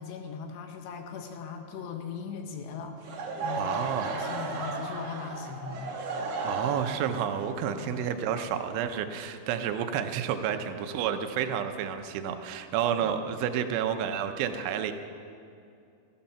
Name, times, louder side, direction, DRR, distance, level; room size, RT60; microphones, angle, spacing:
voice 1, 0.0-6.0 7.7-8.1 12.8-13.1, left 6 dB, 75° left, 5 dB, 2.9 m, -40 dB
Laughter / Crowd, 3.0-8.9, right 3 dB, 60° right, 2.5 m, -35 dB
voice 2, 3.6-4.1 6.4-14.9, right 8 dB, 85° right, 8 dB, 3.2 m, -30 dB
14.5 x 13.0 x 5.7 m, 2.5 s
omnidirectional pair, 5.4 m